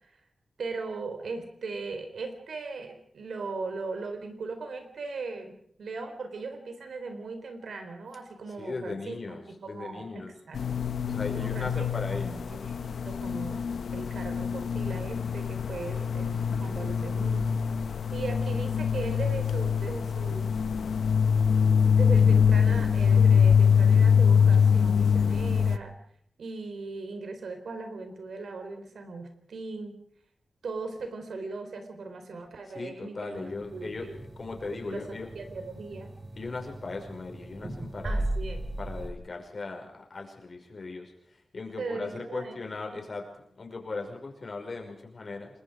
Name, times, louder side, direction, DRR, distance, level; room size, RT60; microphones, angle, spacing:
voice 1, 0.6-10.6 11.3-11.9 12.1-17.5 18.1-20.5 21.9-25.9 26.4-30.0 30.6-34.2 34.7-36.1 38.0-38.7 41.8-42.6, right 3 dB, 85° right, 6 dB, 4.2 m, -38 dB
voice 2, 8.6-10.3 11.1-12.4 32.7-34.1 34.4-35.3 36.4-38.3 38.8-41.1 41.5-43.2 43.6-45.5, left 3 dB, 45° left, 2 dB, 5.5 m, -38 dB
sound 1, 10.5-25.8, left 7 dB, 90° left, 1.0 m, -24 dB
sound 2, 33.3-39.1, right 1 dB, 30° right, 5.5 m, -37 dB
29.0 x 21.0 x 5.0 m, 0.67 s
wide cardioid pair, 145°, 0 cm